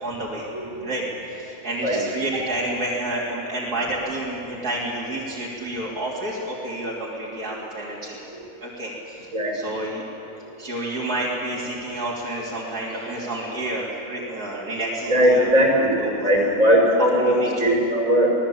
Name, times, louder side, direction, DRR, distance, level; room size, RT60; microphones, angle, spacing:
voice 1, 0.0-0.5 0.8-8.2 8.6-10.1 10.6-15.5 15.8-16.5 17.2-17.5, right 1 dB, 90° right, -7 dB, 3.9 m, -30 dB
voice 2, 15.1-15.9 16.2-18.3, equal, 55° right, -1 dB, 5.7 m, -19 dB
25.5 x 19.5 x 8.7 m, 2.7 s
omnidirectional pair, 1.6 m